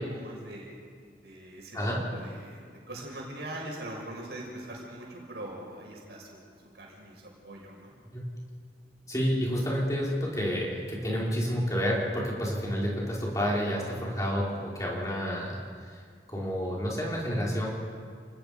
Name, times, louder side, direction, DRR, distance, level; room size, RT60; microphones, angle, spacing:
voice 1, 0.1-0.8 1.2-1.8 2.1-6.5 6.7-7.9, right 1 dB, 75° right, -2 dB, 6.1 m, -42 dB
voice 2, 1.7-2.1 8.1-8.2 9.1-16.0 16.3-17.7, equal, 20° left, -4 dB, 5.3 m, -29 dB
30.0 x 19.5 x 5.4 m, 2.1 s
head